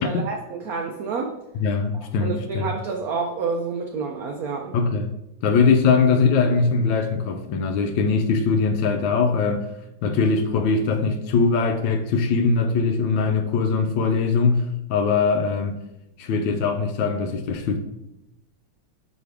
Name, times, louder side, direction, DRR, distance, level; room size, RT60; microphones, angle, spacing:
voice 1, 0.0-1.3 2.2-4.8, right 5 dB, 80° right, 2 dB, 0.8 m, -28 dB
voice 2, 1.5-2.7 4.7-5.1 5.4-9.7 10.0-15.8 16.2-17.8, left 4 dB, 75° left, 6 dB, 1.2 m, -21 dB
6.2 x 4.9 x 3.4 m, 0.88 s
omnidirectional pair, 2.3 m